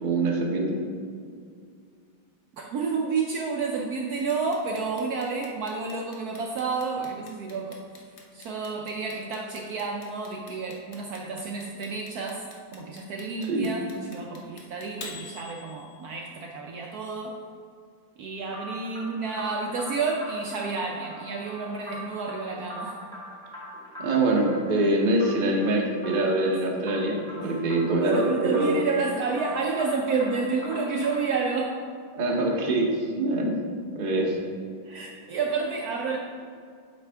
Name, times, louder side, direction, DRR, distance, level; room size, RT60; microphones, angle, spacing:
voice 1, 0.0-0.8 13.5-13.7 24.0-28.7 32.1-32.9 33.2-33.5 33.9-34.4, right 2 dB, 45° right, -1 dB, 0.6 m, -24 dB
voice 2, 2.5-7.8 8.3-12.5 12.7-17.4 18.2-23.0 27.4-27.6 28.0-31.8 34.8-36.2, right 4 dB, 70° right, 0 dB, 0.9 m, -30 dB
Clock, 4.3-16.3, left 5 dB, 75° left, 0.5 m, -46 dB
sound 1, 18.5-31.4, equal, 5° left, 1.1 m, -42 dB
8.0 x 4.3 x 3.3 m, 2.2 s
omnidirectional pair, 2.0 m